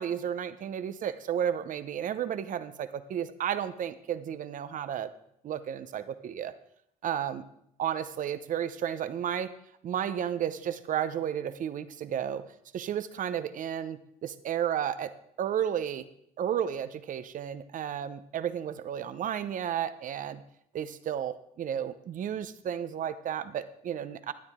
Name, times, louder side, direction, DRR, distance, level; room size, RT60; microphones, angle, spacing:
voice 1, 0.0-5.1 5.4-6.5 7.0-7.4 7.8-9.5 9.8-12.4 12.7-16.1 16.4-20.4 20.7-24.3, right 9 dB, 50° right, 12 dB, 0.8 m, -32 dB
11.5 x 9.6 x 3.7 m, 0.72 s
supercardioid pair, 80°, 17 cm